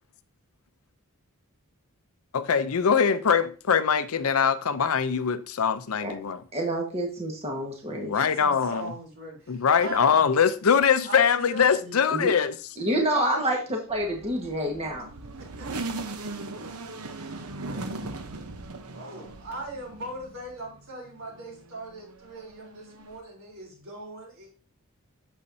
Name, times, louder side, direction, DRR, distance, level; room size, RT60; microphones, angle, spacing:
voice 1, 2.3-6.4 7.9-8.9 9.5-12.5, left 6 dB, 70° left, 0.6 m, -23 dB
voice 2, 6.5-8.1 12.1-12.3 12.8-15.1, right 1 dB, 30° right, 1.5 m, -28 dB
voice 3, 8.0-10.2 11.0-12.0 15.4-16.3 17.1-18.1 18.9-24.5, right 1 dB, 65° right, 3.6 m, -40 dB
sound 1, 13.9-20.8 21.2-23.2, right 2 dB, 85° right, 0.9 m, -39 dB
8.5 x 7.1 x 2.7 m
head